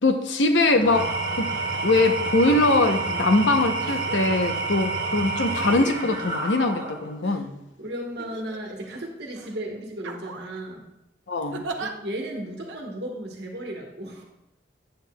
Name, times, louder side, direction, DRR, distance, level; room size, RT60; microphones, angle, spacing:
voice 1, 0.0-1.5 1.8-7.6 11.3-11.7, left 2 dB, 80° left, 6 dB, 0.7 m, -22 dB
Engine / Tools, 0.7-7.2, right 3 dB, 45° right, 1.4 m, -29 dB
sound 1, 1.7-1.9 2.4-3.0 3.8-4.4 5.4-7.4 8.2-8.9 9.3-9.5 10.0-10.6 11.5-11.9 12.7-12.8, right 3 dB, 85° right, 0.7 m, -39 dB
voice 2, 7.8-10.8 11.8-14.2, right 1 dB, 60° right, 0 dB, 1.2 m, -35 dB
9.0 x 8.2 x 2.3 m, 0.89 s
head